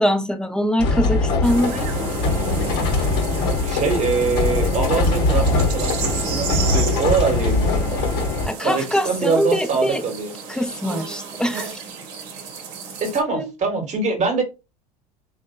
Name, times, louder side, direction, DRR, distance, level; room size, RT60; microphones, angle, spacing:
voice 1, 0.0-2.1 8.5-10.0 10.5-11.8 13.3-13.5, equal, 5° left, 0.4 m, -23 dB
sound 1, 0.8-8.5, left 3 dB, 55° left, 0.9 m, -21 dB
sound 2, 1.4-13.2, right 5 dB, 70° right, 0.8 m, -32 dB
voice 2, 3.6-8.3 8.6-10.3 13.0-14.4, right 4 dB, 35° right, 1.1 m, -23 dB
2.8 x 2.2 x 2.2 m
hypercardioid pair, 80°, 21 cm